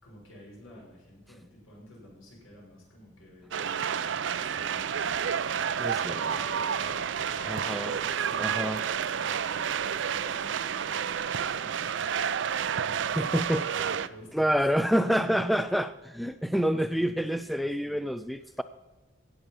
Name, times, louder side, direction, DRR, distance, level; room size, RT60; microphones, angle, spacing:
voice 1, 0.0-6.1 6.3-11.2 11.6-15.6 16.3-18.1 18.4-18.6, equal, 85° left, 5.7 m, -51 dB
sound 1, 3.5-14.1, right 8 dB, 65° right, 0.4 m, -30 dB
Trumpet, 4.2-10.9, left 3 dB, 30° left, 1.7 m, -51 dB
voice 2, 5.8-6.4 7.4-8.0 8.4-8.8 13.2-13.7 14.3-18.6, equal, ahead, 0.3 m, -28 dB
16.0 x 8.0 x 5.6 m
head